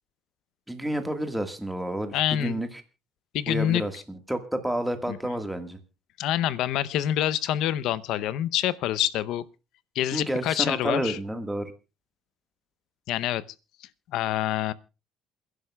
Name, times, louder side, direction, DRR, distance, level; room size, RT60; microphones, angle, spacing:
voice 1, 0.7-2.7 3.5-5.8 10.1-11.7, right 1 dB, 5° right, 1.6 m, -30 dB
voice 2, 2.1-2.6 3.3-3.8 5.1-5.3 6.2-9.4 9.9-11.2 13.1-13.4 14.1-14.7, left 12 dB, 65° left, 0.7 m, -26 dB
28.0 x 11.0 x 2.3 m
cardioid pair, 145°, 0 cm